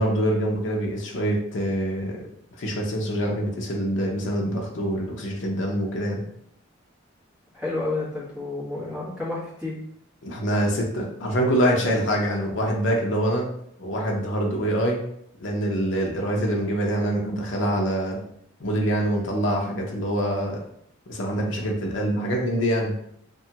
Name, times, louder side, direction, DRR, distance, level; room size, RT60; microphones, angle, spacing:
voice 1, 0.0-2.3 2.6-6.3 10.2-13.5 13.8-15.0 15.4-18.2 18.6-20.6 21.1-23.0, equal, 70° left, 0 dB, 0.6 m, -25 dB
voice 2, 7.5-9.8, left 2 dB, 5° right, -8 dB, 1.1 m, -30 dB
2.9 x 2.3 x 2.8 m, 0.70 s
head